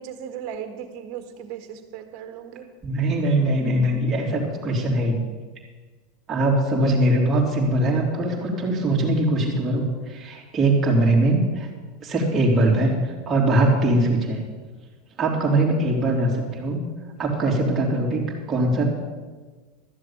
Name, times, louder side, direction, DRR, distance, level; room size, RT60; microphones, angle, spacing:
voice 1, 0.0-2.7, right 8 dB, 55° right, 7 dB, 1.7 m, -36 dB
voice 2, 2.8-5.2 6.3-11.7 12.0-14.4 15.2-16.8 17.2-18.2 18.5-18.8, right 1 dB, 20° right, -3 dB, 3.2 m, -21 dB
13.5 x 7.4 x 8.7 m, 1.4 s
supercardioid pair, 145°, 0 cm